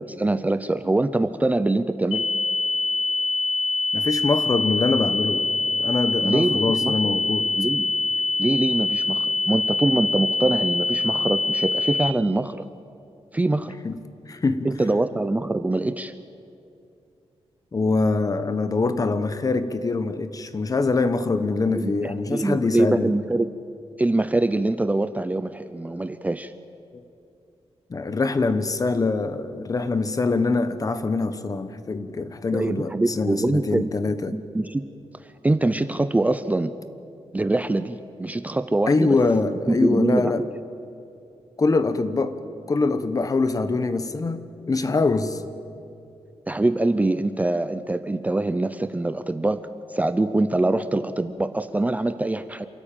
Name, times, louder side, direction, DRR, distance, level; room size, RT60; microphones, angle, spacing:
voice 1, 0.0-2.2 6.2-6.9 7.6-7.9 8.4-12.7 13.3-13.8 14.6-16.1 21.7-23.5 24.0-26.5 32.5-33.9 34.3-34.8 35.2-36.7 37.3-39.2 39.7-40.3 46.5-52.7, right 2 dB, 15° right, 11 dB, 0.6 m, -24 dB
sound 1, 2.1-12.1, left 2 dB, 80° left, 0.9 m, -24 dB
voice 2, 3.9-5.5 5.8-7.5 13.8-14.0 14.3-14.7 17.7-23.1 26.9-27.0 27.9-34.4 38.9-40.4 41.6-42.4 42.7-44.4 44.7-45.4, left 3 dB, 35° left, 11 dB, 1.1 m, -24 dB
28.0 x 13.5 x 9.1 m, 2.6 s
wide cardioid pair, 135°, 11 cm